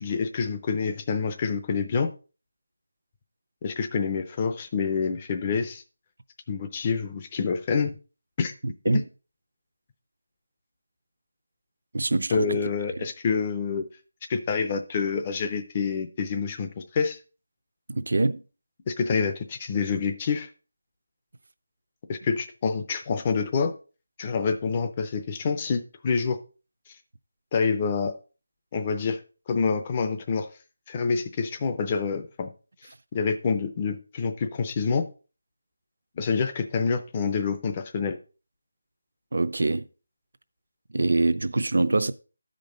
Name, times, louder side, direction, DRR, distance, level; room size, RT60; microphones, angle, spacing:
voice 1, 0.0-2.1 3.6-5.8 6.5-8.0 8.4-8.5 8.9-9.0 12.3-13.8 14.3-17.2 18.9-20.5 22.1-23.7 24.2-26.4 27.5-28.2 28.7-29.2 29.5-30.5 30.9-32.5 33.1-35.1 36.2-38.2, left 5 dB, 15° left, 0.5 m, -27 dB
voice 2, 11.9-12.6 13.0-13.1 17.9-18.4 39.3-39.9 40.9-42.1, right 2 dB, 55° right, 0.5 m, -24 dB
12.5 x 5.2 x 3.9 m
figure-of-eight pair, 180°, 0 cm